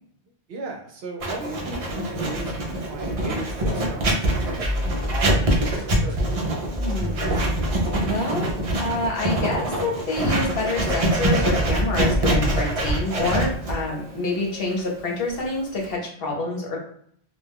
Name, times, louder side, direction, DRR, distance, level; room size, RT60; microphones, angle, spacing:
voice 1, 0.5-6.3 13.8-14.2, right 2 dB, 70° right, 2 dB, 0.8 m, -37 dB
Writing, 1.2-15.9, right 1 dB, 45° right, 0.5 m, -24 dB
sound 1, 4.6-8.3, left 1 dB, 15° left, 0.8 m, -30 dB
voice 2, 6.7-7.4 8.0-16.8, left 2 dB, 60° left, -1 dB, 0.9 m, -27 dB
2.3 x 2.2 x 3.4 m, 0.66 s
omnidirectional pair, 1.1 m